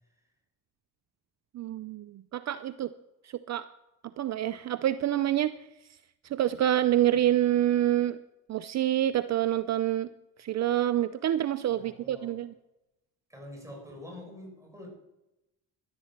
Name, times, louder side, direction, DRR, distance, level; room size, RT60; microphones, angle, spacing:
voice 1, 1.5-2.9 3.5-3.7 4.2-5.5 6.3-8.2 8.5-10.1 10.4-12.5, right 12 dB, 45° right, 14 dB, 0.6 m, -27 dB
voice 2, 11.7-12.4 13.3-14.9, left 1 dB, 10° right, 0 dB, 6.3 m, -46 dB
11.5 x 11.5 x 7.4 m, 0.93 s
supercardioid pair, 75°, 36 cm